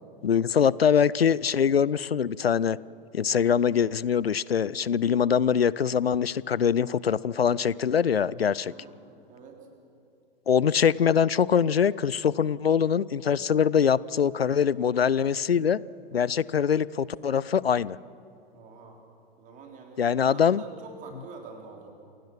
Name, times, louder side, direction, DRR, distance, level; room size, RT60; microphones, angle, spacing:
voice 1, 0.2-2.8 3.1-8.7 10.5-15.8 16.1-18.0 20.0-20.6, left 7 dB, 85° left, 22 dB, 0.5 m, -23 dB
voice 2, 8.6-9.0 9.3-9.6 18.5-19.0 19.4-20.1 20.3-21.9, right 4 dB, 25° right, 3 dB, 3.4 m, -46 dB
27.5 x 16.5 x 6.2 m, 2.6 s
figure-of-eight pair, 100°, 30 cm